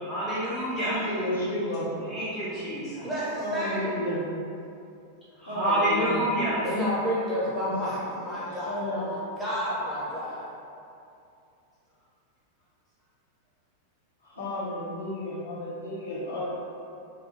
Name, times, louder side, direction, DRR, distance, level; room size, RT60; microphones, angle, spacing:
voice 1, 0.0-1.0 2.0-3.1 5.4-6.6, right 1 dB, 20° left, -10 dB, 0.6 m, -28 dB
voice 2, 0.7-1.9 3.3-4.2 5.4-6.2 7.6-7.8 8.3-9.0 14.2-16.5, left 1 dB, 75° left, -10 dB, 1.0 m, -32 dB
voice 3, 3.0-4.0 6.6-10.5, equal, 10° right, -9 dB, 1.1 m, -30 dB
3.0 x 2.3 x 3.0 m, 2.6 s
figure-of-eight pair, 90°, 0 cm